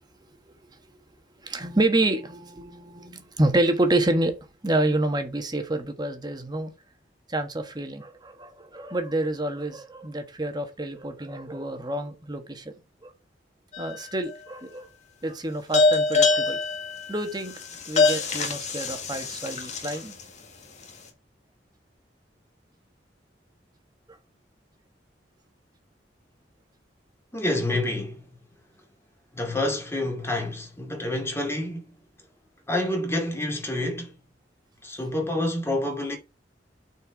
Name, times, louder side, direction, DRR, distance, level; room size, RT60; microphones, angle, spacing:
voice 1, 1.4-4.4 4.6-6.7 7.3-12.7 13.0-13.1 13.8-14.9 15.2-16.6 17.1-17.5 17.9-20.1 24.1-24.2, right 2 dB, 25° right, 1.4 m, -28 dB
sound 1, 13.7-14.3 15.7-20.2, left 3 dB, 40° left, 1.8 m, -24 dB
voice 2, 27.3-28.2 29.4-32.0 32.7-34.1 34.8-36.2, left 1 dB, 15° left, 2.4 m, -28 dB
9.0 x 4.6 x 4.8 m
head